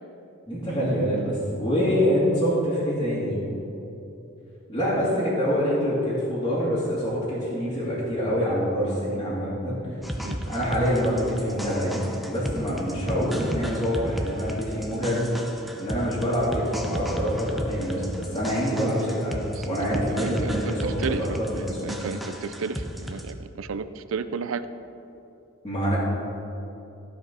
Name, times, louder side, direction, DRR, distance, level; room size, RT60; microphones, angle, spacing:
voice 1, 0.5-3.4 4.7-9.8 10.5-15.2 15.8-21.8 25.6-26.0, equal, 20° left, -10 dB, 2.4 m, -26 dB
sound 1, 10.0-23.3, equal, ahead, 0.7 m, -34 dB
voice 2, 20.2-24.7, right 5 dB, 70° right, 12 dB, 0.5 m, -33 dB
14.5 x 5.0 x 5.4 m, 2.9 s
head